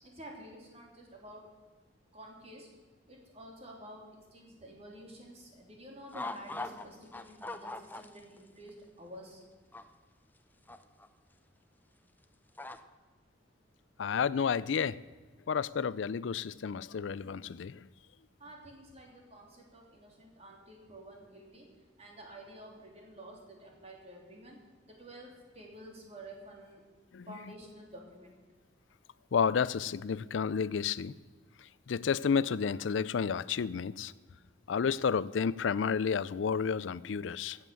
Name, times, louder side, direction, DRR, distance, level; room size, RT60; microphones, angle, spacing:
voice 1, 0.0-1.5 2.1-2.7 3.1-9.4 18.4-21.7 22.0-24.6 24.9-26.8 27.3-28.3, right 1 dB, 35° right, 3.2 m, -50 dB
sound 1, 6.1-6.8 7.1-8.4 8.7-8.8 9.7-9.8 10.7-11.1 12.6-12.8, left 2 dB, 10° left, 0.6 m, -40 dB
voice 2, 14.0-15.0 15.5-17.8 27.1-27.3 29.3-31.1 31.9-34.1 34.7-37.6, left 6 dB, 75° left, 0.4 m, -31 dB
14.5 x 8.1 x 6.9 m
head